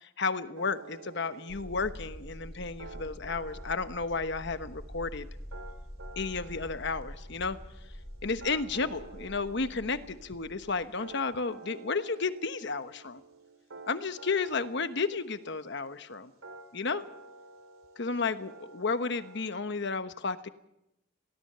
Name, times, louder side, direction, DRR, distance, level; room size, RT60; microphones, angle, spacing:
voice 1, 0.0-5.3 6.2-7.6 8.2-13.2 13.9-16.3 16.7-17.0 18.0-20.5, left 4 dB, 60° left, 10 dB, 1.1 m, -32 dB
sound 1, 0.5-19.5, right 3 dB, 85° right, 3.3 m, -51 dB
sound 2, 1.5-11.1, equal, 10° left, 1.8 m, -46 dB
23.0 x 17.0 x 6.8 m, 0.84 s
head